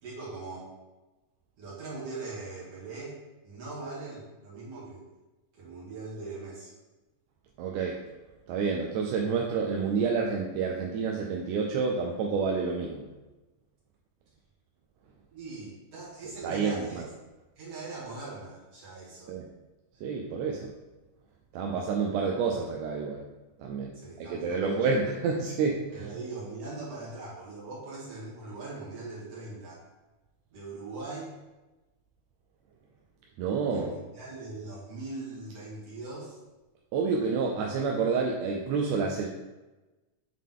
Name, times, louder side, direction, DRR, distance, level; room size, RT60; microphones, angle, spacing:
voice 1, 0.0-0.7 1.6-3.2 3.4-5.0 5.6-6.7 15.3-17.1 17.6-19.3 23.9-24.9 25.9-29.8 30.5-31.3 33.7-36.4, right 3 dB, 55° right, -7 dB, 2.8 m, -41 dB
voice 2, 7.6-8.0 8.5-13.0 16.4-17.1 19.3-19.4 20.0-20.7 21.5-23.2 23.6-23.9 24.2-26.1 33.4-33.9 36.9-39.3, right 5 dB, 75° right, 0 dB, 1.7 m, -29 dB
7.5 x 3.7 x 3.7 m, 1.1 s
omnidirectional pair, 3.4 m